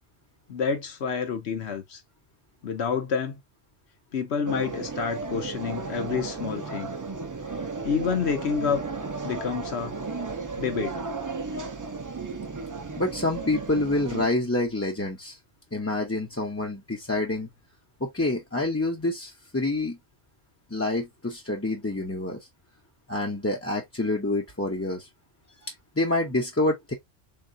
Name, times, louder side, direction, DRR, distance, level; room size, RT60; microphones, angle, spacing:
voice 1, 0.5-2.0 2.6-3.4 4.1-6.9 7.8-8.8 9.2-10.0 10.6-11.0, left 6 dB, 70° left, 1.2 m, -28 dB
sound 1, 4.5-14.3, right 4 dB, 30° right, 0.3 m, -34 dB
voice 2, 13.0-15.4 15.7-17.5 18.0-20.0 20.7-22.4 23.1-25.1 25.6-26.9, left 2 dB, 15° left, 0.6 m, -27 dB
3.6 x 3.5 x 2.6 m
omnidirectional pair, 1.1 m